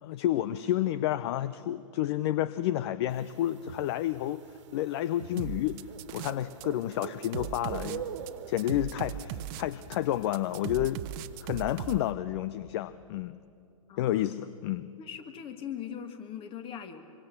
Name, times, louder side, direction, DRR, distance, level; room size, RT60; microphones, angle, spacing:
voice 1, 0.0-4.4 4.7-5.8 6.1-8.1 8.5-11.0 11.4-13.3 14.0-14.9, left 13 dB, 50° left, 15 dB, 0.7 m, -30 dB
sound 1, 3.1-12.1, right 9 dB, 55° right, 1.7 m, -46 dB
sound 2, 5.4-6.6 6.9-12.0, right 11 dB, 40° right, 1.0 m, -38 dB
voice 2, 13.9-14.3 15.0-17.0, left 8 dB, 30° left, 8 dB, 2.1 m, -40 dB
25.5 x 23.5 x 7.1 m, 2.5 s
hypercardioid pair, 120°, 18 cm